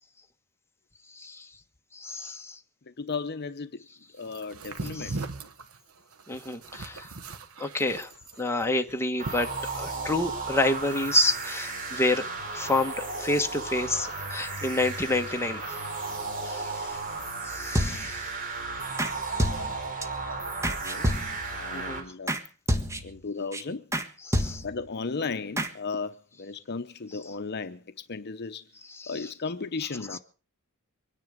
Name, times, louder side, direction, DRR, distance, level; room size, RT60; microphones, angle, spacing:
voice 1, 1.9-2.6 4.9-5.2 6.3-7.1 7.6-8.1 8.4-9.5 9.8-12.2 12.5-15.8 16.4-17.0 17.4-18.3 19.4-19.5 20.2-20.3 21.7-22.0 24.2-24.6 28.9-29.2 30.1-30.2, left 2 dB, 10° left, 1.3 m, -29 dB
voice 2, 2.9-3.8 4.1-5.2 20.6-21.1 21.5-22.3 23.0-23.8 24.6-28.6 29.1-30.2, left 4 dB, 50° left, 0.8 m, -35 dB
sound 1, 4.3-10.1, right 3 dB, 70° right, 1.4 m, -39 dB
sound 2, 9.2-22.0, right 3 dB, 40° right, 3.9 m, -34 dB
sound 3, 17.8-18.3 19.0-19.1 19.4-20.1 20.6-21.6 22.3-22.4 22.7-23.2 23.5-23.6 23.9-24.1 24.3-24.9 25.6-25.7, equal, 15° right, 1.4 m, -28 dB
24.0 x 10.5 x 5.1 m
head